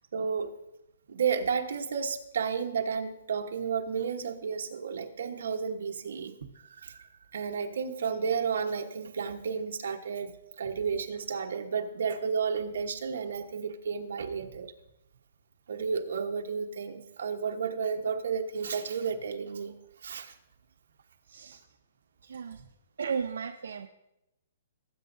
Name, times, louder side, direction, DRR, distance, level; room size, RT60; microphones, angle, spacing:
voice 1, 0.1-0.6 1.1-6.3 6.6-14.7 15.7-19.7 20.0-20.3, right 6 dB, 65° right, 4 dB, 1.1 m, -32 dB
voice 2, 21.3-21.6 22.2-22.6 23.0-23.9, right 6 dB, 85° right, 6 dB, 0.6 m, -35 dB
19.0 x 8.7 x 2.7 m, 0.89 s
hypercardioid pair, 180°, 0 cm